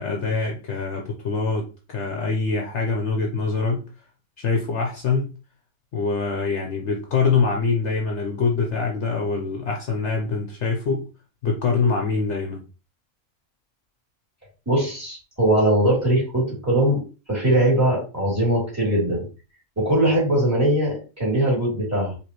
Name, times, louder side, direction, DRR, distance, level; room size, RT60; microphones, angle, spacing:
voice 1, 0.0-3.8 4.4-5.3 5.9-11.1 11.4-12.6, left 4 dB, 60° left, 2 dB, 1.0 m, -24 dB
voice 2, 14.7-17.0 17.3-19.2 19.8-22.2, right 1 dB, 10° right, -4 dB, 2.6 m, -21 dB
4.8 x 3.2 x 3.0 m, 0.33 s
omnidirectional pair, 1.5 m